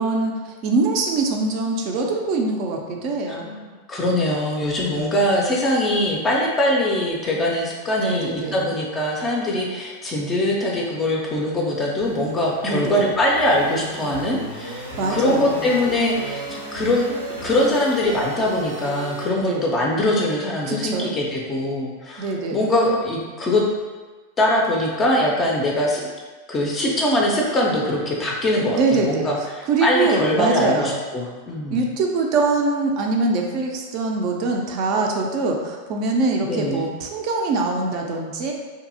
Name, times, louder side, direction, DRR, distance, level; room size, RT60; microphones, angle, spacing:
voice 1, 0.0-3.5 8.0-8.7 12.6-13.1 15.0-15.8 19.4-19.7 20.6-21.1 22.2-22.6 28.7-29.3 29.7-30.9 31.2-31.3 31.7-38.5, right 3 dB, 40° right, 1 dB, 0.4 m, -23 dB
voice 2, 3.9-17.0 17.3-23.6 24.4-26.0 26.5-31.9 36.4-36.9, left 1 dB, 20° left, -2 dB, 0.4 m, -22 dB
sound 1, 12.0-19.2, equal, 80° right, 0.7 m, -35 dB
2.7 x 2.6 x 2.5 m, 1.3 s
figure-of-eight pair, 90°, 0 cm